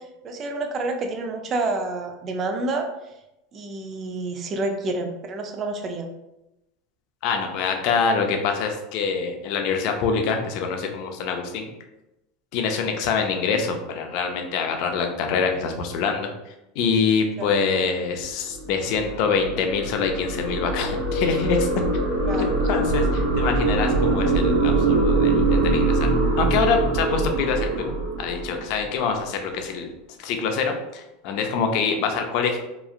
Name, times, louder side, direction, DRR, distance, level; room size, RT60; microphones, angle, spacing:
voice 1, 0.0-2.9 3.5-6.1 12.8-12.9 17.4-17.5 22.3-22.6, right 2 dB, 35° right, 5 dB, 0.4 m, -29 dB
voice 2, 7.2-11.7 12.5-16.3 16.8-21.8 22.4-26.1 26.4-29.9 30.2-32.6, left 5 dB, 60° left, 4 dB, 0.5 m, -25 dB
sound 1, 18.3-28.9, right 3 dB, 80° right, 1.0 m, -23 dB
2.9 x 2.4 x 2.4 m, 0.92 s
supercardioid pair, 120°, 0 cm